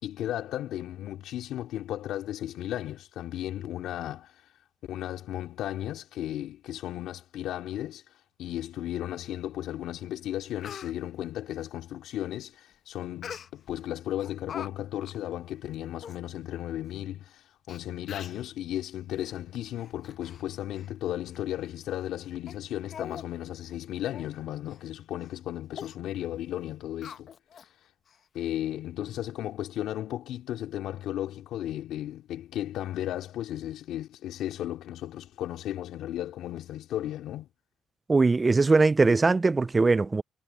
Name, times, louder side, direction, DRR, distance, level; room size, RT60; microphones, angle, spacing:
voice 1, 0.0-4.3 4.9-8.0 8.4-27.3 28.3-37.5, left 12 dB, 75° left, 3.5 m, -35 dB
Speech, 9.9-10.0 10.4-10.9 13.2-13.8 14.2-14.7 15.0-15.2 15.7-15.8 16.0-16.2 17.0-17.1 17.7-17.8 18.1-18.5 19.1-19.3 19.8-20.4 20.7-20.9 21.3-21.4 22.0-22.1 22.5-22.6 22.9-23.3 23.6-23.7 24.1-24.3 24.7-24.8 25.2-25.4 25.7-26.0 27.0-27.7 28.1-28.2, left 7 dB, 55° left, 0.9 m, -43 dB
voice 2, 38.1-40.2, right 3 dB, 25° right, 0.3 m, -21 dB
cardioid pair, 95°, 0 cm